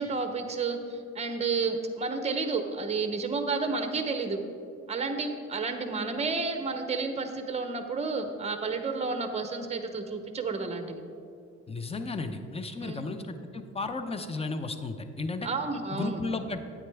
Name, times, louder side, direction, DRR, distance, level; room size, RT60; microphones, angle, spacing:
voice 1, 0.0-4.4 4.9-11.0 12.8-13.0 15.4-16.2, right 4 dB, 20° right, 6 dB, 0.8 m, -31 dB
voice 2, 11.7-15.5 15.9-16.6, left 3 dB, 20° left, 9 dB, 0.6 m, -34 dB
9.5 x 8.6 x 3.4 m, 2.5 s
cardioid pair, 90°, 30 cm